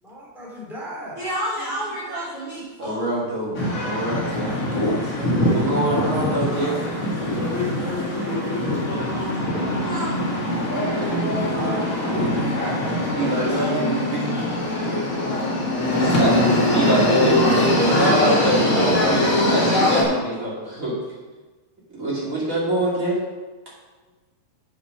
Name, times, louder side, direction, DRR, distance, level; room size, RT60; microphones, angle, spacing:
voice 1, 0.0-1.2 5.1-5.4 6.4-6.9 7.2-9.1 11.1-13.4 14.3-14.5 14.8-15.7 19.2-20.2, left 2 dB, ahead, -5 dB, 2.3 m, -34 dB
voice 2, 1.2-3.0 5.0-5.4 9.8-10.2 16.8-18.3, right 1 dB, 50° right, -5 dB, 1.8 m, -32 dB
voice 3, 2.8-4.5 5.5-6.7 13.1-14.3 16.0-21.0 21.9-23.2, right 1 dB, 25° right, -6 dB, 2.4 m, -24 dB
sound 1, 3.5-20.0, left 1 dB, 35° left, 1.3 m, -22 dB
7.4 x 7.3 x 6.0 m, 1.2 s
omnidirectional pair, 4.3 m